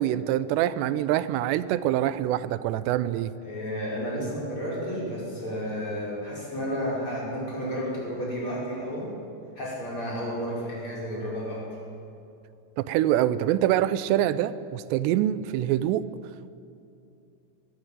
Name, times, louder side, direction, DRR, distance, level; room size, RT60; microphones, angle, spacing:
voice 1, 0.0-3.3 12.8-16.1, right 12 dB, 90° right, 15 dB, 2.9 m, -25 dB
voice 2, 3.4-9.1 9.6-11.7, equal, 30° left, -5 dB, 6.1 m, -32 dB
21.5 x 14.5 x 9.0 m, 2.7 s
omnidirectional pair, 4.8 m